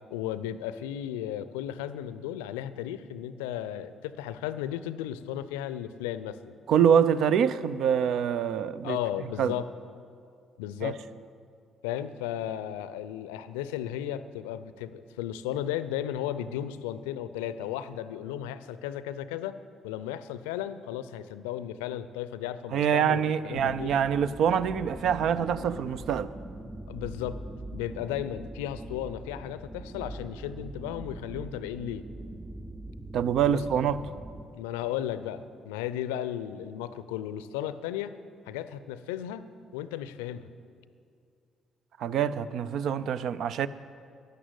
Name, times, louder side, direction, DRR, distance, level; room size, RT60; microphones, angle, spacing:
voice 1, 0.1-6.6 8.8-9.7 10.6-11.0 11.8-19.6 19.8-23.9 26.9-27.4 27.7-32.1 33.5-33.6 34.5-38.1 38.5-39.5 39.7-40.5, left 11 dB, 75° left, 13 dB, 0.5 m, -35 dB
voice 2, 6.7-9.0 9.4-9.5 10.8-10.9 22.7-26.3 33.1-34.0 42.0-43.7, right 8 dB, 60° right, 15 dB, 0.5 m, -25 dB
sound 1, 23.5-34.4, right 1 dB, 15° right, 2.6 m, -42 dB
12.0 x 11.5 x 8.0 m, 2.3 s
hypercardioid pair, 45°, 0 cm